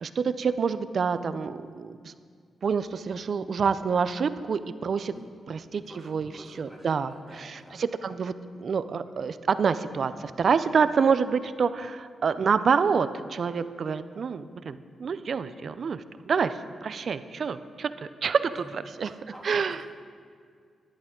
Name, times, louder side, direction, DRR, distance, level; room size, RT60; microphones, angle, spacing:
voice 1, 0.0-2.1 2.6-5.1 5.5-6.3 6.6-7.1 7.4-8.3 8.6-19.2 19.4-19.8, right 6 dB, 60° right, 12 dB, 0.5 m, -27 dB
voice 2, 5.1-5.4 5.8-7.8 18.5-19.9, equal, 10° left, -3 dB, 2.6 m, -49 dB
12.5 x 10.5 x 3.7 m, 2.1 s
cardioid pair, 70°, 0 cm